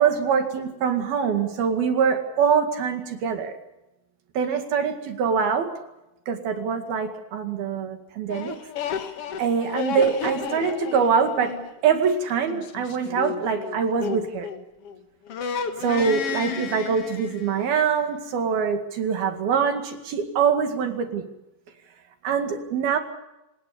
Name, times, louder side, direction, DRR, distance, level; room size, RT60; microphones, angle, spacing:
voice 1, 0.0-3.6 4.4-5.7 6.3-8.6 9.4-14.5 15.8-21.3 22.2-23.0, right 6 dB, 60° right, 6 dB, 3.8 m, -24 dB
sound 1, 8.3-15.0 15.3-17.7, left 6 dB, 65° left, 1.4 m, -32 dB
27.5 x 17.0 x 6.8 m, 0.93 s
omnidirectional pair, 5.1 m